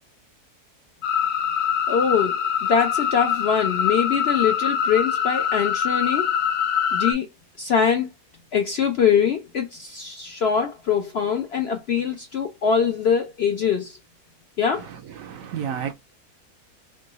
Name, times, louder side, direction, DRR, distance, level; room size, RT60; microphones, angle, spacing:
sound 1, 1.0-7.1, left 8 dB, 80° left, 1.2 m, -24 dB
voice 1, 1.9-6.3 6.9-7.3 7.6-8.1 8.5-14.0 14.6-14.9, left 7 dB, 65° left, 0.6 m, -23 dB
voice 2, 15.2-15.9, right 8 dB, 70° right, 0.9 m, -30 dB
3.7 x 2.3 x 3.8 m
omnidirectional pair, 1.6 m